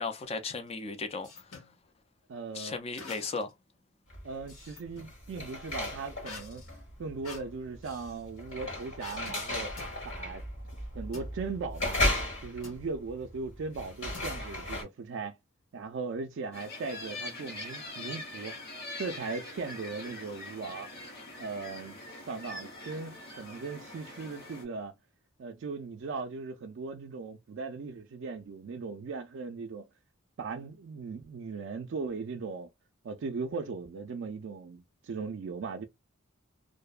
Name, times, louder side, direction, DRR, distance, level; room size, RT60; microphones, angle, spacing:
voice 1, 0.0-1.5 2.5-3.5, left 4 dB, 30° left, 0.3 m, -36 dB
sound 1, 0.6-1.7 3.0-3.6 3.9-5.2 6.2-8.2 9.0-9.4 9.8-10.0 11.1-11.3 12.6-12.9 14.1-14.7, left 4 dB, 90° left, 1.0 m, -47 dB
voice 2, 2.3-2.8 4.2-6.6 7.0-9.7 10.0-10.4 10.9-12.0 12.4-15.4 15.7-18.5 19.0-20.9 21.4-24.9 25.4-29.9 30.4-32.7 33.0-35.9, right 4 dB, 60° right, 0.3 m, -38 dB
sound 2, 4.1-4.5 4.9-14.8, left 1 dB, 65° left, 1.4 m, -35 dB
sound 3, 16.5-24.6, left 2 dB, 50° left, 0.9 m, -43 dB
2.5 x 2.1 x 2.3 m
head